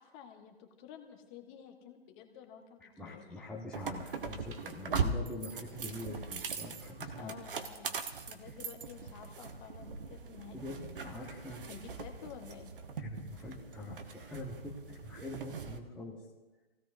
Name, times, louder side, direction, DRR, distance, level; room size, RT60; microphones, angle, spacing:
voice 1, 0.0-3.3 7.2-7.9 8.3-10.9 11.7-12.7, left 7 dB, 25° left, 4 dB, 1.4 m, -51 dB
voice 2, 2.8-7.4 10.5-11.6 13.0-16.2, left 2 dB, 5° left, -6 dB, 1.0 m, -44 dB
sound 1, 3.7-15.8, right 4 dB, 55° right, 1.2 m, -40 dB
25.5 x 16.5 x 2.7 m, 1.2 s
figure-of-eight pair, 130°, 32 cm